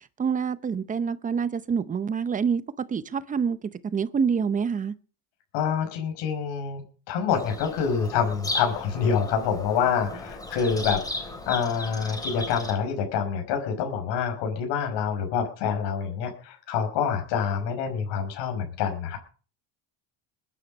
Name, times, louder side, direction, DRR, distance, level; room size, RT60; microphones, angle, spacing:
voice 1, 0.2-2.6 2.9-3.6 3.9-4.9, right 6 dB, 20° right, 0.7 m, -26 dB
voice 2, 5.5-6.8 7.1-19.2, left 7 dB, 75° left, 5.7 m, -27 dB
Bird vocalization bird call bird song, 7.3-12.7, left 2 dB, 10° left, 3.2 m, -35 dB
21.5 x 10.0 x 5.3 m
cardioid pair, 160°, 43 cm